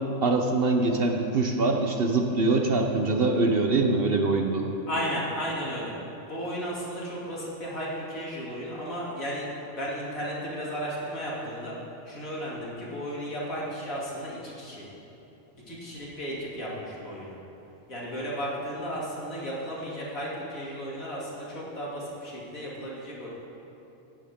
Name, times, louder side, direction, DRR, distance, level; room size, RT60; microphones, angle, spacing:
voice 1, 0.2-4.7, right 3 dB, 50° right, 3 dB, 0.9 m, -24 dB
voice 2, 4.9-5.9 6.3-11.7 12.0-14.8 15.7-17.4 17.9-23.3, equal, 75° left, -6 dB, 3.2 m, -34 dB
16.5 x 11.5 x 3.6 m, 3.0 s
omnidirectional pair, 1.4 m